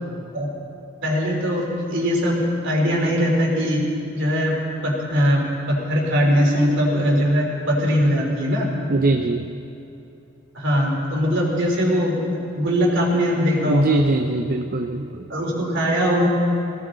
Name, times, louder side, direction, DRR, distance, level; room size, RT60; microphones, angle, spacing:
voice 1, 1.0-3.8 4.1-4.6 4.8-8.7 10.5-12.2 12.5-14.0 15.3-16.3, equal, 60° right, -2 dB, 3.8 m, -21 dB
voice 2, 8.9-9.5 13.6-15.3, right 2 dB, 45° right, 5 dB, 0.6 m, -22 dB
20.5 x 17.5 x 4.0 m, 2.9 s
head